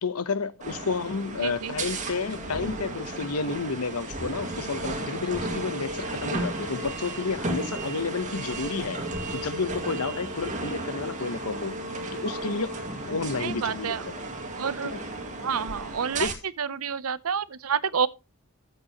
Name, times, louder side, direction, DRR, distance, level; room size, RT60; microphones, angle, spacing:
voice 1, 0.0-9.0 9.3-11.8 12.1-12.7 13.1-14.2 14.8-15.0 16.2-16.3, left 4 dB, 90° left, 0.9 m, -31 dB
sound 1, 0.6-16.3, right 2 dB, 35° right, 2.1 m, -34 dB
voice 2, 1.4-1.7 13.4-14.0 14.6-14.9 15.4-16.3 16.6-18.1, right 7 dB, 75° right, 0.7 m, -28 dB
13.5 x 7.9 x 2.9 m
head